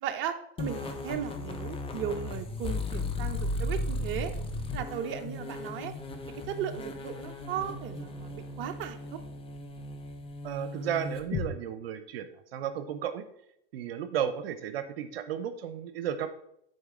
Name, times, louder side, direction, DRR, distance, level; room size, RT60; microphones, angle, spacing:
voice 1, 0.0-4.3 4.7-5.9 6.5-9.2, right 9 dB, 40° right, 6 dB, 0.8 m, -36 dB
sound 1, 0.6-11.5, left 2 dB, 20° left, 0.8 m, -36 dB
voice 2, 10.4-12.3 12.5-13.2 13.7-16.3, right 9 dB, 80° right, 10 dB, 0.7 m, -33 dB
9.3 x 4.2 x 3.7 m, 0.74 s
hypercardioid pair, 115°, 30 cm